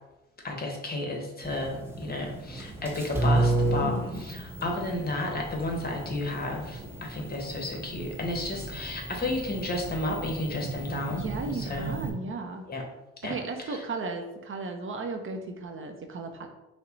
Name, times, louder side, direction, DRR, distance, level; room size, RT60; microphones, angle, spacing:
voice 1, 0.4-11.2 11.5-11.9 12.7-12.8 13.2-13.3 13.6-13.8, left 2 dB, 30° left, 1 dB, 1.1 m, -32 dB
sound 1, 1.4-12.1, right 2 dB, 10° right, 0.7 m, -32 dB
voice 2, 3.8-4.2 11.1-12.6 13.2-16.5, right 3 dB, 45° right, 4 dB, 0.6 m, -35 dB
5.4 x 2.2 x 3.9 m, 0.98 s
cardioid pair, 90°, 30 cm